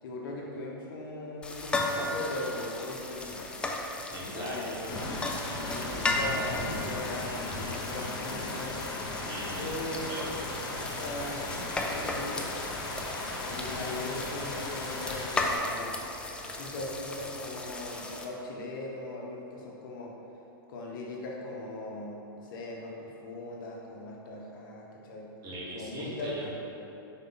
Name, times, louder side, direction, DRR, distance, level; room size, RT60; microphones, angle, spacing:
voice 1, 0.0-3.5 4.2-5.1 5.7-8.8 9.6-10.2 10.6-11.5 11.8-12.5 13.5-16.0 16.4-20.2 20.7-25.3 25.7-26.4, left 2 dB, 60° left, -2 dB, 1.1 m, -39 dB
sound 1, 1.4-18.2, left 2 dB, 10° left, 0.4 m, -36 dB
voice 2, 4.1-5.0 9.3-9.8 10.1-10.3 25.4-26.5, right 1 dB, 30° right, -4 dB, 1.2 m, -39 dB
sound 2, 4.9-15.6, left 2 dB, 30° left, 0.9 m, -37 dB
5.5 x 4.5 x 3.9 m, 3.0 s
hypercardioid pair, 120°, 12 cm